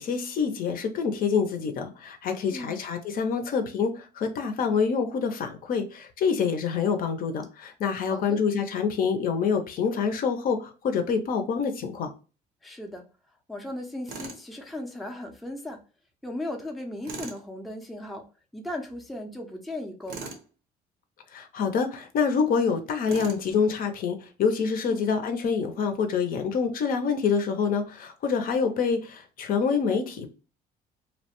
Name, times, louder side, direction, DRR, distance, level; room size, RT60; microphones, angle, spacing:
voice 1, 0.0-12.1 21.3-30.4, left 6 dB, 55° left, 6 dB, 0.5 m, -26 dB
voice 2, 8.1-8.4 12.6-13.0 13.5-15.8 16.2-18.3 18.5-20.4 24.9-25.1, left 1 dB, ahead, 2 dB, 0.4 m, -37 dB
Tools, 14.1-14.4 17.0-17.4 20.1-20.5 23.1-23.5, right 4 dB, 70° right, 0.7 m, -39 dB
2.8 x 2.1 x 2.9 m, 0.35 s
cardioid pair, 110°, 17 cm